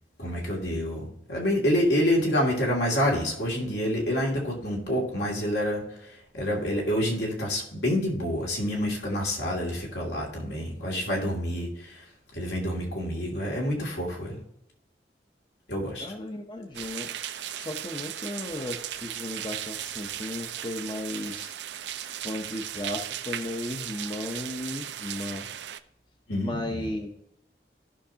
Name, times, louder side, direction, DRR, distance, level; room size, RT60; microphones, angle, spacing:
voice 1, 0.2-12.0 12.3-14.4 15.7-16.1 26.3-26.8, equal, 75° left, -2 dB, 2.6 m, -28 dB
voice 2, 16.0-17.1 17.6-21.5 22.2-25.5 26.4-27.1, left 1 dB, 25° left, 3 dB, 0.7 m, -35 dB
sound 1, 16.7-25.8, right 11 dB, 85° right, 0.5 m, -37 dB
15.5 x 5.9 x 2.8 m, 0.80 s
head